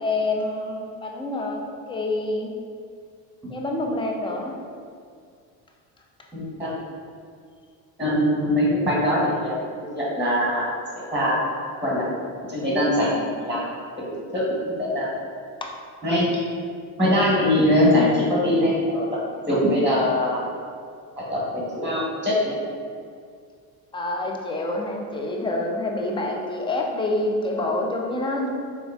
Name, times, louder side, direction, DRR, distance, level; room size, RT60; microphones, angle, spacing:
voice 1, 0.0-1.6 1.9-2.5 3.5-4.6 15.6-15.8 23.9-28.5, left 2 dB, 10° left, 1 dB, 0.3 m, -27 dB
voice 2, 6.3-6.7 8.0-9.6 9.9-10.7 10.9-11.4 11.8-12.1 12.5-13.1 13.5-13.6 14.0-14.1 14.3-15.1 16.0-16.3 17.0-19.0 19.5-20.4 21.2-22.6, left 1 dB, 5° right, -6 dB, 1.0 m, -22 dB
3.7 x 3.5 x 2.3 m, 2.2 s
hypercardioid pair, 70°, 49 cm